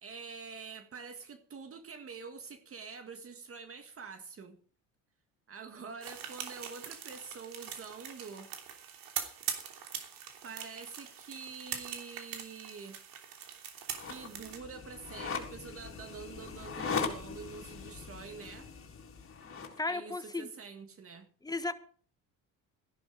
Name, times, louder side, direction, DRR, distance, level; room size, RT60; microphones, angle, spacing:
voice 1, 0.0-4.6 5.5-8.5 10.4-13.0 14.1-18.7 19.9-21.3, right 5 dB, 40° right, 1.8 m, -46 dB
sound 1, 6.0-14.6, right 9 dB, 75° right, 3.2 m, -42 dB
sound 2, 13.9-19.8, left 5 dB, 40° left, 4.2 m, -40 dB
voice 2, 19.8-20.5 21.4-21.7, left 2 dB, 10° left, 1.3 m, -34 dB
15.0 x 11.5 x 5.1 m
cardioid pair, 110°, 34 cm